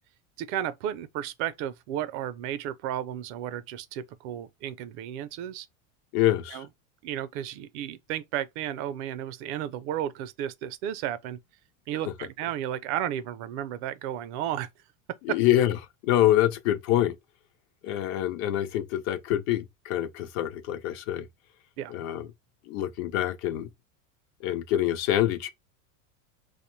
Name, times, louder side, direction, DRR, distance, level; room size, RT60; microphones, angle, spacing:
voice 1, 0.4-5.7 6.5-6.7 7.0-11.4 11.9-14.7 21.8-21.9, right 11 dB, 60° right, 0.5 m, -33 dB
voice 2, 6.1-6.7 15.2-15.8 16.0-17.1 17.8-21.3 21.9-22.3 22.7-23.7 24.4-25.5, left 13 dB, 45° left, 0.4 m, -25 dB
2.5 x 2.0 x 3.0 m
supercardioid pair, 140°, 40 cm